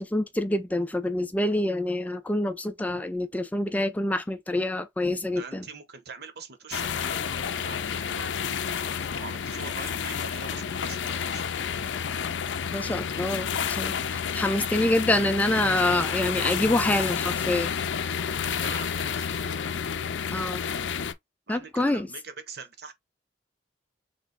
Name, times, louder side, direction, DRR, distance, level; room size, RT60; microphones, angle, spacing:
voice 1, 0.0-5.7 12.7-17.7 20.3-20.6 21.5-22.1, left 1 dB, 10° left, 0.3 m, -26 dB
voice 2, 5.4-11.4 18.4-19.7 20.1-21.0 21.5-22.9, right 5 dB, 60° right, 0.9 m, -44 dB
sound 1, 6.7-21.1, left 7 dB, 85° left, 0.5 m, -30 dB
3.3 x 3.0 x 3.8 m
head